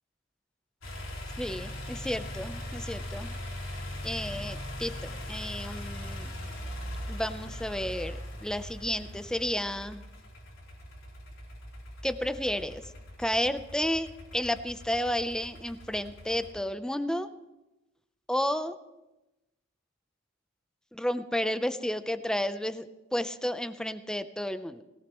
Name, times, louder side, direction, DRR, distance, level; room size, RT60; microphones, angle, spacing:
sound 1, 0.8-16.5, left 1 dB, 85° left, 3.5 m, -40 dB
voice 1, 1.4-3.3 4.0-6.3 7.1-10.0 12.0-12.8 13.2-14.1 14.3-17.3 18.3-18.8 20.9-24.8, left 1 dB, 5° left, 11 dB, 0.6 m, -32 dB
21.0 x 17.5 x 3.1 m, 1.0 s
head